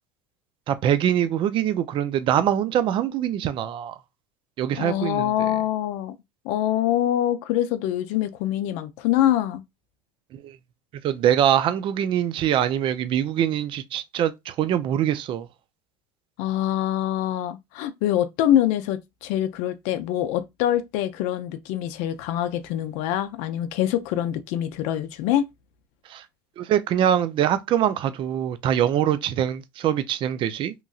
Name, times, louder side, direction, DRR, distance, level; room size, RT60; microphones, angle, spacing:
voice 1, 0.7-4.0 4.6-5.5 10.3-10.6 11.0-15.5 26.1-26.2 26.6-30.7, right 10 dB, 40° right, 0.4 m, -23 dB
voice 2, 4.8-6.1 6.4-9.6 16.4-25.5, left 12 dB, 65° left, 0.5 m, -24 dB
3.0 x 2.6 x 2.3 m
supercardioid pair, 95°, 13 cm